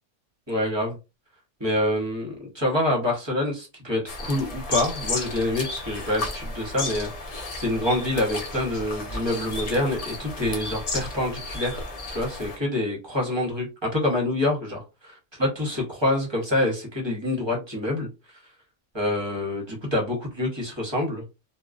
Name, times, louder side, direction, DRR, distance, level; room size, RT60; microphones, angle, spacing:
voice 1, 0.5-1.0 1.6-14.8 15.4-18.4 18.9-21.2, left 1 dB, 25° right, -1 dB, 0.7 m, -26 dB
sound 1, 4.1-12.6, left 2 dB, 45° left, 0.5 m, -33 dB
2.3 x 2.2 x 2.4 m, 0.27 s
omnidirectional pair, 1.3 m